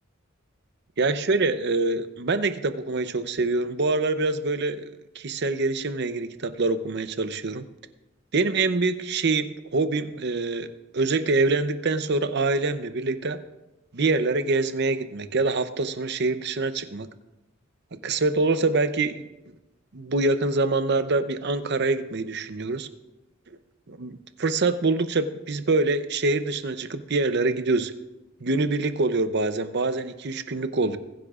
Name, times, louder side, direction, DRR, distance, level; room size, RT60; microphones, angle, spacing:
voice 1, 1.0-7.6 8.3-10.7 10.9-13.4 13.9-17.1 18.0-19.5 19.9-22.9 23.9-27.9 28.4-31.0, right 3 dB, 55° right, 11 dB, 0.7 m, -25 dB
22.0 x 10.0 x 2.4 m, 1.0 s
head